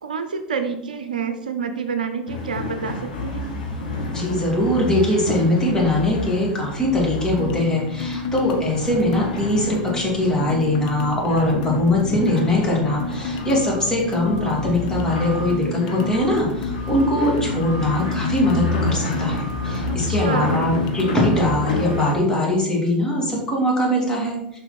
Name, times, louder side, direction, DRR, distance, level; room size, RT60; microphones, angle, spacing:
voice 1, 0.0-3.5 19.9-20.6, right 5 dB, 70° right, 8 dB, 0.6 m, -28 dB
sound 1, 2.3-22.2, left 2 dB, 70° left, 2.2 m, -30 dB
voice 2, 4.1-24.6, left 1 dB, 15° left, -3 dB, 2.8 m, -21 dB
sound 2, 7.4-21.3, left 3 dB, 50° left, 0.8 m, -31 dB
7.3 x 5.5 x 4.4 m, 0.84 s
figure-of-eight pair, 85°, 5 cm